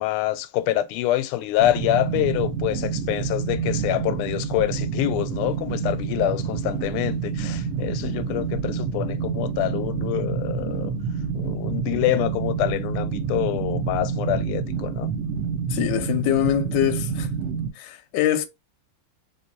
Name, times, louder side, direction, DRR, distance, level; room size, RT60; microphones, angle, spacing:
voice 1, 0.0-10.9 11.3-15.1, left 14 dB, 90° left, 1.5 m, -26 dB
sound 1, 1.6-17.7, right 6 dB, 45° right, 1.0 m, -28 dB
voice 2, 15.7-17.3 17.8-18.5, left 11 dB, 70° left, 1.1 m, -23 dB
3.1 x 3.0 x 3.0 m
omnidirectional pair, 2.3 m